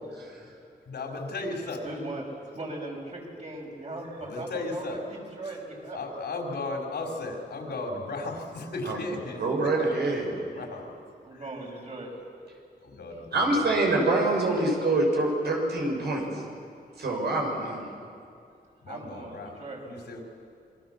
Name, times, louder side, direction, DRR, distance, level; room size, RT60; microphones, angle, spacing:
voice 1, 0.9-1.9 4.2-5.0 5.9-9.7 10.1-11.0 11.3-11.4 12.8-13.8 18.8-20.2, left 2 dB, 85° left, 1 dB, 4.4 m, -36 dB
voice 2, 1.8-6.0 11.2-12.1 13.1-13.2 18.9-19.9, right 2 dB, 45° right, -1 dB, 6.8 m, -39 dB
voice 3, 9.4-10.4 13.3-16.3 17.0-17.9, right 2 dB, 85° right, 0 dB, 6.4 m, -25 dB
27.5 x 23.5 x 7.3 m, 2.4 s
wide cardioid pair, 120°, 17 cm